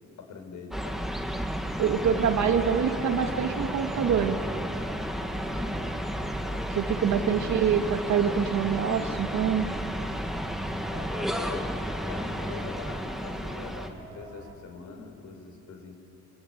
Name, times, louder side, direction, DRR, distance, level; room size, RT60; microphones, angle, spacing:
voice 1, 0.2-1.0 1.9-2.2 5.4-5.8 7.1-7.3 10.9-11.7 12.0-16.0, left 4 dB, 70° left, 4 dB, 4.8 m, -42 dB
sound 1, 0.7-13.9, equal, ahead, 1.6 m, -32 dB
voice 2, 1.8-4.4 6.7-9.7, right 7 dB, 70° right, 5 dB, 2.1 m, -25 dB
sound 2, 3.5-14.6, right 4 dB, 90° right, 3.4 m, -47 dB
25.0 x 23.5 x 9.0 m, 2.9 s
cardioid pair, 135°, 30 cm